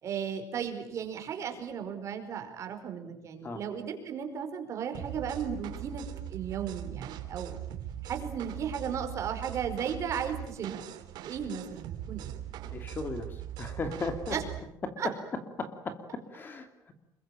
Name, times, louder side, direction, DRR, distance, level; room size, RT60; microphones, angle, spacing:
voice 1, 0.0-6.0 6.3-7.6 8.0-10.8 11.2-12.4 14.3-14.4 15.0-15.1, right 7 dB, 40° right, 6 dB, 4.9 m, -35 dB
sound 1, 4.9-14.6, right 12 dB, 70° right, 3.4 m, -41 dB
voice 2, 12.6-14.4 14.8-16.9, left 3 dB, 25° left, 8 dB, 2.8 m, -37 dB
28.0 x 23.0 x 9.0 m, 0.72 s
cardioid pair, 160°, 8 cm